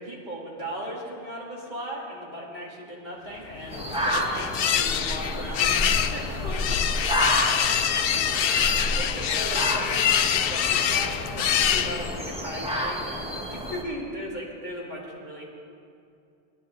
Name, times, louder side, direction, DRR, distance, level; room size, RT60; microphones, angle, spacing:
voice 1, 0.0-7.8 8.1-15.4, equal, 45° right, -5 dB, 3.4 m, -37 dB
sound 1, 3.5-12.4, left 9 dB, 65° left, 0.7 m, -25 dB
sound 2, 3.7-13.8, equal, 5° right, 1.5 m, -30 dB
20.0 x 11.0 x 4.0 m, 2.5 s
omnidirectional pair, 1.1 m